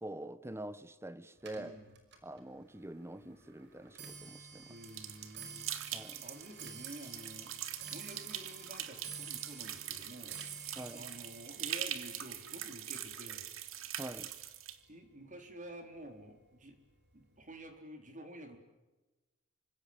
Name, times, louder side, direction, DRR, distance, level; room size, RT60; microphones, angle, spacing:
voice 1, 0.0-1.8 2.2-4.7 5.9-6.2 10.8-11.0 14.0-14.3, right 1 dB, 15° right, 1.1 m, -45 dB
Clock, 1.4-14.7 15.1-15.5 16.3-16.4 16.7-17.1 17.4-17.5, right 5 dB, 60° right, 5.6 m, -52 dB
voice 2, 4.7-7.5 7.9-13.5 14.9-16.8 17.1-18.6, right 1 dB, 40° right, 3.9 m, -50 dB
sound 1, 4.8-14.8, right 11 dB, 80° right, 2.1 m, -43 dB
27.5 x 25.5 x 7.3 m
head